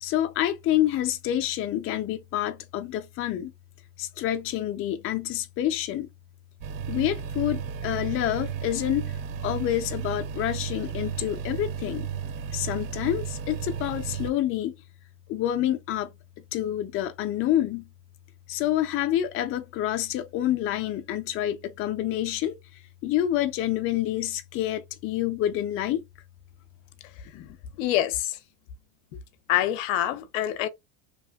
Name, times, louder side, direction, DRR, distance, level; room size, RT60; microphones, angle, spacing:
voice 1, 0.0-3.5 4.0-6.1 6.9-9.2 9.4-12.1 12.5-14.7 15.3-16.1 16.5-17.9 18.5-22.6 23.0-26.0 27.3-27.5, left 12 dB, 35° left, 0.4 m, -27 dB
sound 1, 6.6-14.3, right 7 dB, 55° right, 0.5 m, -33 dB
voice 2, 27.8-28.4 29.5-30.7, left 13 dB, 80° left, 0.6 m, -25 dB
2.8 x 2.3 x 2.2 m
supercardioid pair, 110°, 39 cm